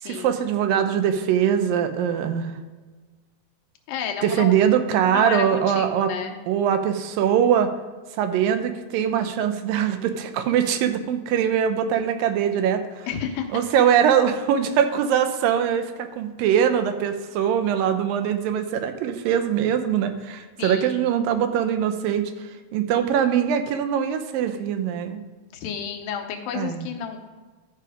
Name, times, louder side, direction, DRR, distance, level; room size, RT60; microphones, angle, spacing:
voice 1, 0.0-2.5 4.2-6.1 6.5-7.7 8.1-13.1 13.5-22.2 22.7-25.2 26.5-26.9, right 8 dB, 90° right, 8 dB, 2.5 m, -22 dB
voice 2, 3.9-4.5 5.1-6.4 13.1-13.6 20.6-21.1 25.5-27.2, left 7 dB, 85° left, 3 dB, 2.8 m, -31 dB
12.5 x 5.7 x 5.0 m, 1.4 s
omnidirectional pair, 3.9 m